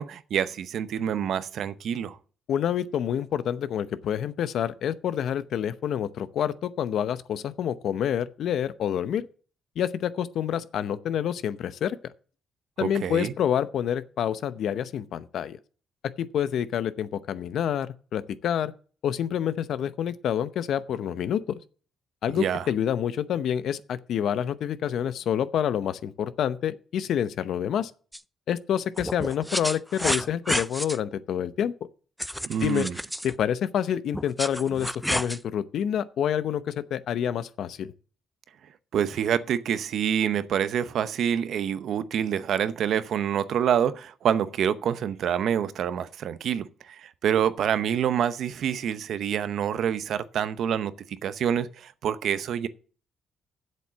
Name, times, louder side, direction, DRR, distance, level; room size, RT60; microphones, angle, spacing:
voice 1, 0.0-2.2 12.8-13.3 22.4-22.6 32.5-33.0 38.9-52.7, right 9 dB, 70° right, 0.7 m, -27 dB
voice 2, 2.5-9.3 9.8-12.0 12.8-15.6 16.2-18.7 19.0-21.6 22.2-27.9 28.5-31.7 32.6-32.9 33.2-37.9, left 9 dB, 70° left, 0.7 m, -28 dB
sound 1, 28.1-28.2 29.0-31.0 32.2-33.4 34.1-35.4, equal, ahead, 0.5 m, -30 dB
7.9 x 7.4 x 7.3 m
cardioid pair, 90°, 0 cm